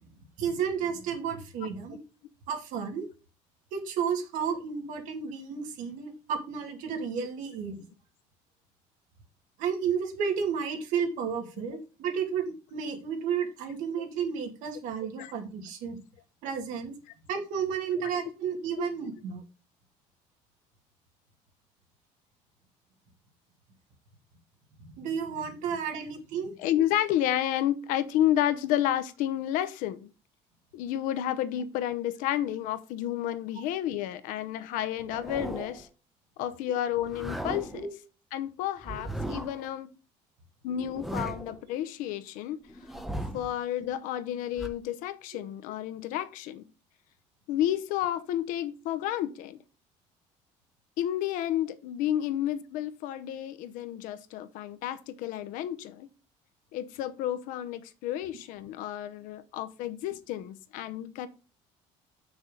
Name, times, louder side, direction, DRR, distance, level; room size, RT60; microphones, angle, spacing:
voice 1, 0.4-2.0 2.5-3.1 3.7-7.8 9.6-16.0 16.4-17.0 17.3-19.4 24.9-26.5 37.7-37.9 38.9-39.0 45.3-45.4, right 7 dB, 70° right, 2.3 m, -32 dB
voice 2, 26.6-30.1 30.7-35.9 36.4-37.9 38.3-39.9 40.6-42.6 43.3-46.7 47.5-49.6 51.0-56.1 56.7-61.3, left 12 dB, 85° left, 0.8 m, -31 dB
sound 1, 35.0-35.9 37.0-37.9 38.8-39.7 40.7-41.6 42.7-43.5 44.6-44.7, right 1 dB, ahead, 0.7 m, -37 dB
7.2 x 6.2 x 3.8 m
cardioid pair, 180°, 14 cm